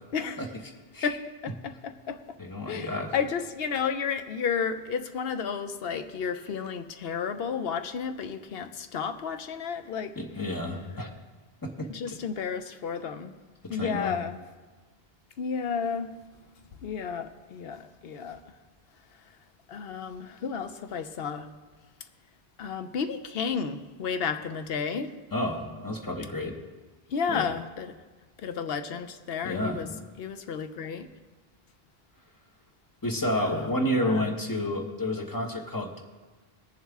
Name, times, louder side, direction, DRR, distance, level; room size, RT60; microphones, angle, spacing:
voice 1, 1.0-2.4 2.7-10.1 11.9-13.3 13.7-14.4 15.4-16.1 16.8-18.4 19.7-21.5 22.6-25.1 27.1-28.0 28.4-29.9 30.2-31.1 33.3-33.7 34.0-34.3, left 6 dB, 75° left, 9 dB, 0.9 m, -32 dB
voice 2, 2.4-3.1 10.2-11.1 11.6-12.1 13.6-14.1 25.3-26.6 27.3-27.5 29.4-30.1 33.0-36.0, left 1 dB, 20° left, 2 dB, 1.0 m, -30 dB
19.5 x 7.2 x 3.6 m, 1.3 s
omnidirectional pair, 1.0 m